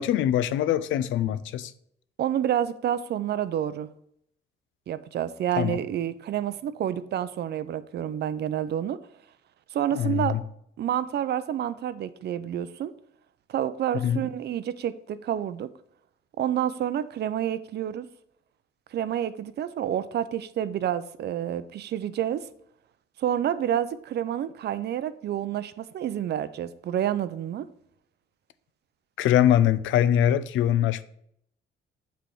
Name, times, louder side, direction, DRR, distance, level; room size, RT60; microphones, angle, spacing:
voice 1, 0.0-1.7 5.6-5.8 9.9-10.4 13.9-14.2 29.2-31.0, left 11 dB, 80° left, 0.4 m, -23 dB
voice 2, 2.2-3.9 4.9-9.0 9.7-10.4 10.8-12.9 13.5-15.7 16.4-18.1 18.9-22.5 23.2-27.7, right 10 dB, 60° right, 0.4 m, -29 dB
7.5 x 3.4 x 4.5 m
cardioid pair, 90°, 20 cm